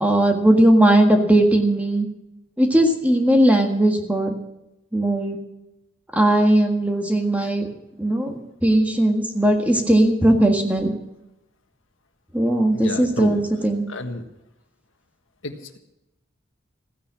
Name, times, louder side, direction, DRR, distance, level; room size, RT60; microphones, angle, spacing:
voice 1, 0.0-2.1 2.6-4.3 4.9-5.4 6.1-7.7 8.0-10.9 12.3-13.9, right 1 dB, 5° right, 3 dB, 1.6 m, -18 dB
voice 2, 12.7-13.4 13.9-14.2 15.4-15.8, left 2 dB, 75° left, 6 dB, 1.6 m, -31 dB
15.5 x 10.0 x 7.5 m, 0.89 s
head